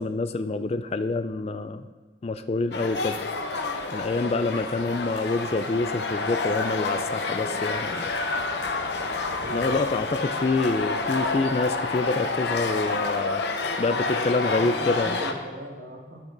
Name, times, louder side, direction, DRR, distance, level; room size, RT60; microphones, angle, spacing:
voice 1, 0.0-1.8 2.2-3.2 3.9-8.1 9.5-13.4 13.8-15.1, left 3 dB, 35° left, 9 dB, 0.3 m, -27 dB
sound 1, 2.7-15.3, left 3 dB, 65° left, 0.9 m, -28 dB
voice 2, 9.4-9.9 14.5-16.2, equal, 60° right, 0 dB, 1.7 m, -38 dB
13.0 x 8.9 x 3.9 m, 1.4 s
head